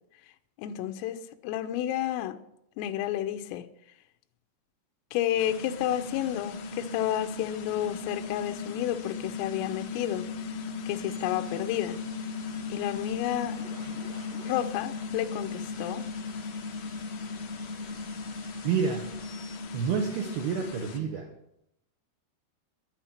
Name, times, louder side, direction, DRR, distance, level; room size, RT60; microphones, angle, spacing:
voice 1, 0.6-2.4 2.8-3.7 5.1-10.3 10.9-12.0 12.7-13.6 14.4-16.0, left 12 dB, 85° left, 3.3 m, -31 dB
sound 1, 5.4-21.0, left 4 dB, 70° left, 2.9 m, -37 dB
sound 2, 10.9-19.6, right 1 dB, 20° right, 6.9 m, -53 dB
voice 2, 18.6-19.1 19.7-21.3, right 6 dB, 70° right, 2.4 m, -29 dB
11.0 x 9.8 x 7.2 m
omnidirectional pair, 5.7 m